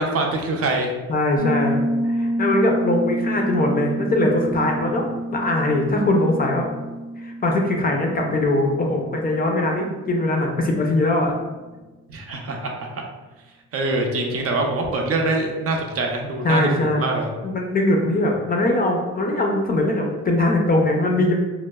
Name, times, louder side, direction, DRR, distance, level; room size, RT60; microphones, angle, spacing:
voice 1, 0.0-0.9 12.1-13.0 13.7-17.3, right 2 dB, 50° right, 1 dB, 0.5 m, -24 dB
voice 2, 1.1-1.8 2.0-6.7 7.2-11.3 16.4-17.0 17.4-21.3, left 1 dB, 30° left, 1 dB, 0.4 m, -21 dB
Piano, 1.4-9.9, right 1 dB, 75° left, 0.7 m, -28 dB
2.9 x 2.0 x 2.2 m, 1.2 s
cardioid pair, 90°, 30 cm